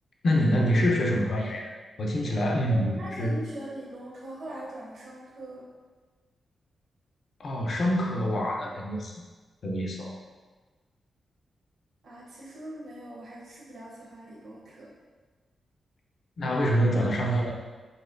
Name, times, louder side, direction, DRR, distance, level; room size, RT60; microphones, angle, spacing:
voice 1, 0.2-1.7 2.0-3.4 7.4-9.2 9.6-10.2 16.4-17.5, equal, 50° left, 0 dB, 0.5 m, -26 dB
voice 2, 2.7-5.6 12.0-14.9, right 1 dB, 65° right, -5 dB, 0.8 m, -41 dB
4.1 x 2.9 x 2.5 m, 1.4 s
wide cardioid pair, 155°, 0 cm